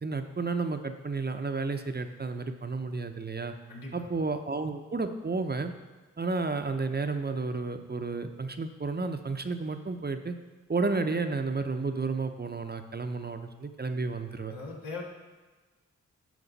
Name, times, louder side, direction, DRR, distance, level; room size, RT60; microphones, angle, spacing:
voice 1, 0.0-3.5 3.9-5.7 6.2-10.3 10.7-14.5, right 3 dB, 30° right, 7 dB, 0.7 m, -32 dB
voice 2, 3.7-4.1 14.5-15.0, left 3 dB, 80° left, -2 dB, 1.8 m, -39 dB
11.0 x 4.6 x 4.1 m, 1.3 s
cardioid pair, 40°, 33 cm